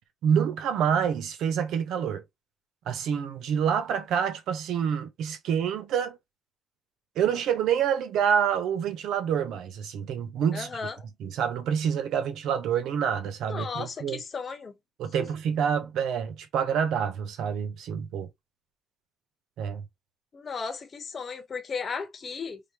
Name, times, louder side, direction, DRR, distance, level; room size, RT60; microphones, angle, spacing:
voice 1, 0.2-2.2 2.9-6.2 7.2-10.7 11.2-14.2 15.0-18.3 19.6-19.8, right 8 dB, 85° right, 0.7 m, -27 dB
voice 2, 10.5-11.0 13.5-14.7 15.2-15.3 20.3-22.6, left 5 dB, 40° left, 1.0 m, -35 dB
4.8 x 2.1 x 2.9 m
cardioid pair, 90°, 0 cm